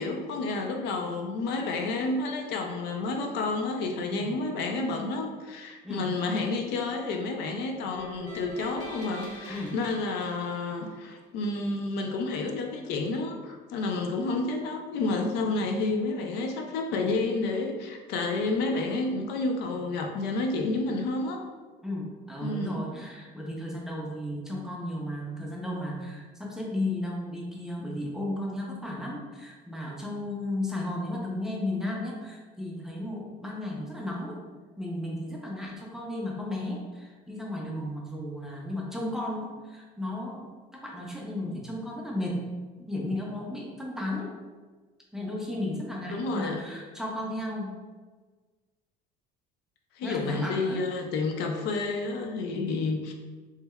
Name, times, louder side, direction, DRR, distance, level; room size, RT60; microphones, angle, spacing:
voice 1, 0.0-21.4 22.4-22.8 46.1-46.6 50.0-53.1, left 3 dB, 70° left, 3 dB, 0.5 m, -30 dB
sound 1, 7.9-11.2, equal, 45° left, 1.2 m, -44 dB
voice 2, 21.8-34.4 34.8-42.5 42.8-44.3 45.1-47.8 50.0-50.8, left 1 dB, 5° right, -3 dB, 0.5 m, -34 dB
3.3 x 3.1 x 2.2 m, 1.4 s
cardioid pair, 135°, 18 cm